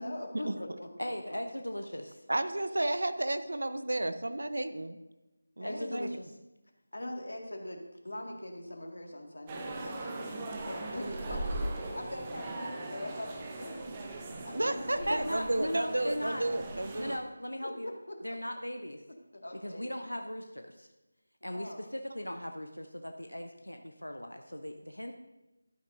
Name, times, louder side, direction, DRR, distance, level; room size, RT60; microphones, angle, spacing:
voice 1, 0.0-1.1 5.6-6.1 6.9-15.3 17.6-18.4 19.3-19.9 21.5-21.8, left 1 dB, 70° left, 2 dB, 1.8 m, -42 dB
voice 2, 1.0-2.2 5.6-6.2 15.1-16.4 17.0-17.9 18.2-19.0 19.6-20.9 21.4-25.1, equal, 90° left, 5 dB, 0.7 m, -38 dB
voice 3, 2.3-5.0 5.6-6.1 14.5-17.2, right 1 dB, 70° right, 11 dB, 0.7 m, -32 dB
sound 1, 9.5-17.2, right 2 dB, 20° right, 0.8 m, -39 dB
12.5 x 10.5 x 2.6 m, 1.0 s
figure-of-eight pair, 165°, 0 cm